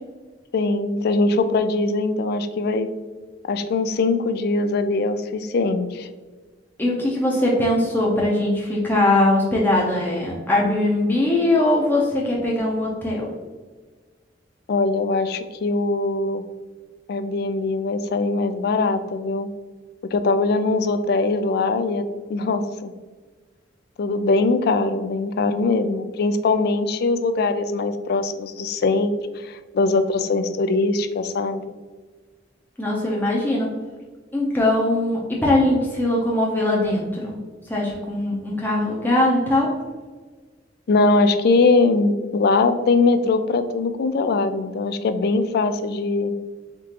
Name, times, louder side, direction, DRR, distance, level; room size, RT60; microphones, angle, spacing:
voice 1, 0.5-2.9 3.5-6.1 14.7-16.4 17.1-19.5 20.1-22.0 22.3-22.9 24.0-31.6 40.9-46.3, left 3 dB, 60° left, 10 dB, 0.3 m, -21 dB
voice 2, 6.8-13.3 32.8-33.7 34.3-37.4 37.7-39.7, left 1 dB, 10° left, -3 dB, 0.6 m, -21 dB
3.6 x 3.6 x 2.9 m, 1.4 s
head